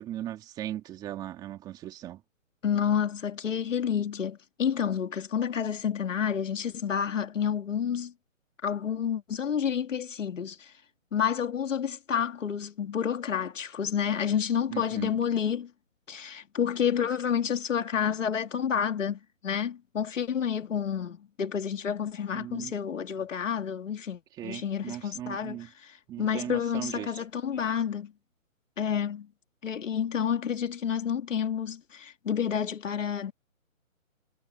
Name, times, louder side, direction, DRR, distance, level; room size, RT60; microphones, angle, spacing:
voice 1, 0.0-2.2 14.7-15.2 22.3-22.7 24.4-25.7 26.1-27.2, right 12 dB, 10° right, 2.7 m, -38 dB
voice 2, 2.6-8.1 8.6-10.7 11.1-15.7 16.1-28.1 28.8-29.3 29.6-33.3, left 8 dB, 65° left, 2.3 m, -29 dB
hypercardioid pair, 170°, 41 cm